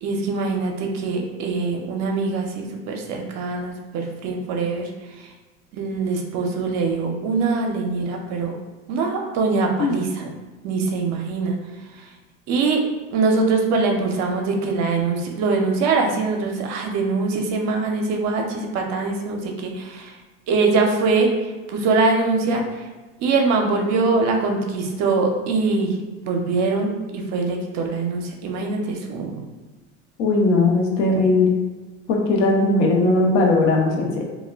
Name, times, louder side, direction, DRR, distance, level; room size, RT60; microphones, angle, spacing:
voice 1, 0.0-4.9 5.7-8.5 8.9-10.3 10.6-11.6 12.5-12.8 13.1-20.1 20.5-21.3 21.7-22.6 23.2-25.9 26.2-29.3 31.1-31.2, right 3 dB, 50° right, 2 dB, 0.5 m, -23 dB
voice 2, 30.2-31.6 32.1-34.2, left 2 dB, 70° left, 0 dB, 0.7 m, -18 dB
2.1 x 2.1 x 3.3 m, 1.2 s
hypercardioid pair, 95°, 36 cm